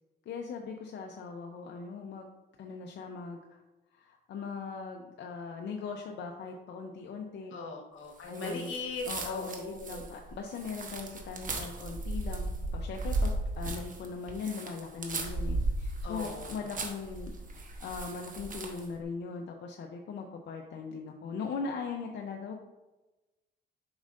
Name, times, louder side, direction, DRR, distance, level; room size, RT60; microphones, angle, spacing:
voice 1, 0.3-2.3 2.6-3.6 4.0-7.5 8.3-8.7 9.1-22.6, left 5 dB, 60° left, 2 dB, 0.7 m, -40 dB
voice 2, 7.5-10.1 16.0-16.6, left 3 dB, 80° left, 1 dB, 1.4 m, -39 dB
sound 1, 8.3-18.9, right 2 dB, 40° right, 1.1 m, -36 dB
7.1 x 5.3 x 2.6 m, 1.1 s
cardioid pair, 90°, 20 cm